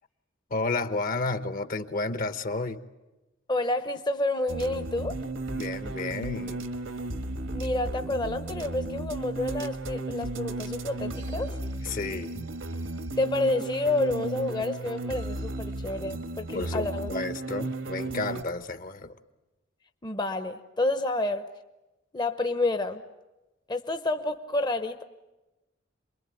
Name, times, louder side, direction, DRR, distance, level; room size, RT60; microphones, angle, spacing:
voice 1, 0.5-2.8 5.5-6.6 11.8-12.5 16.5-19.2, left 3 dB, 45° left, 12 dB, 1.0 m, -32 dB
voice 2, 3.5-5.2 7.5-11.5 13.2-17.1 20.0-21.5 22.1-23.0 23.7-25.0, left 2 dB, 25° left, 8 dB, 0.8 m, -29 dB
sound 1, 4.5-18.4, right 2 dB, 75° right, 1.6 m, -34 dB
27.5 x 22.0 x 9.0 m, 1.1 s
head